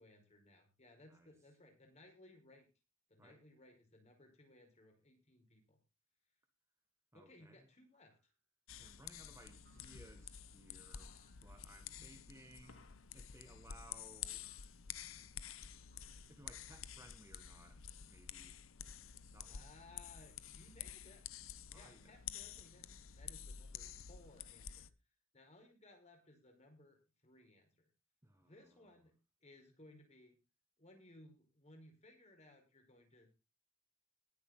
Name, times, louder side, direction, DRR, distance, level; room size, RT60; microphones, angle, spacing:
voice 1, 0.0-2.7 3.1-5.8 7.1-8.1 12.0-12.1 19.5-21.2 21.6-22.9 23.2-24.9 25.3-27.9 28.4-29.1 29.4-30.4 30.8-33.3, left 1 dB, 35° left, 3 dB, 4.8 m, -62 dB
voice 2, 7.1-7.7 8.8-14.5 15.2-15.5 16.3-18.6 19.3-19.7 21.7-22.2 28.2-28.9, right 1 dB, 15° right, 6 dB, 1.7 m, -62 dB
sound 1, 7.9-8.4 9.6-10.4 11.1-11.7 12.6-13.2 14.4-14.9 15.9-16.7, right 3 dB, 55° right, 3.0 m, -76 dB
sound 2, 8.7-24.9, left 9 dB, 70° left, 0.8 m, -50 dB
19.5 x 8.2 x 3.8 m, 0.29 s
head